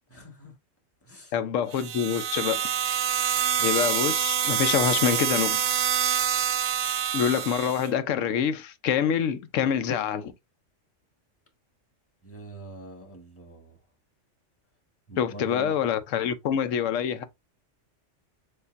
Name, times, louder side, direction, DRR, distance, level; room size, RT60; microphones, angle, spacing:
voice 1, 0.1-0.5 1.0-1.3 12.2-13.8 15.1-15.7, right 1 dB, 10° left, 1.2 m, -43 dB
voice 2, 1.3-2.7 3.6-5.6 7.1-10.3 15.2-17.2, left 8 dB, 90° left, 1.0 m, -26 dB
sound 1, 1.7-7.9, right 9 dB, 60° right, 0.8 m, -26 dB
6.6 x 2.5 x 2.4 m
omnidirectional pair, 1.3 m